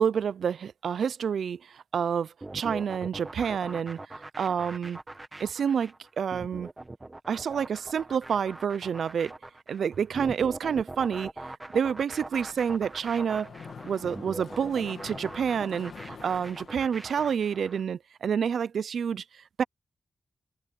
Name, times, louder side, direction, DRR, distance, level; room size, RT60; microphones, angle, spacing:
voice 1, 0.0-4.0 4.4-5.0 5.4-6.7 7.3-9.3 9.7-11.3 11.7-13.5 13.8-19.2 19.6-19.7, right 7 dB, 80° right, 0.4 m, -28 dB
sound 1, 2.4-17.8, right 2 dB, 20° right, 1.7 m, -42 dB
Mechanisms, 12.2-17.4, left 6 dB, 65° left, 2.4 m, -47 dB
open air
wide cardioid pair, 170°, 0 cm